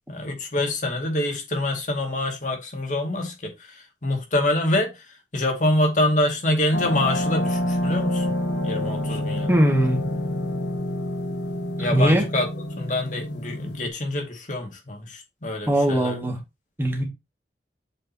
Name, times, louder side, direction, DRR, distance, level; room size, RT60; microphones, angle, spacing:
voice 1, 0.1-8.4 8.6-9.5 11.8-12.5 12.8-16.2, left 1 dB, 45° left, 2.2 m, -26 dB
sound 1, 6.7-13.9, left 1 dB, 80° left, 1.4 m, -27 dB
voice 2, 9.5-10.0 11.9-12.2 15.7-16.4 16.8-17.0, right 1 dB, 15° right, 2.0 m, -20 dB
7.9 x 5.2 x 2.9 m
head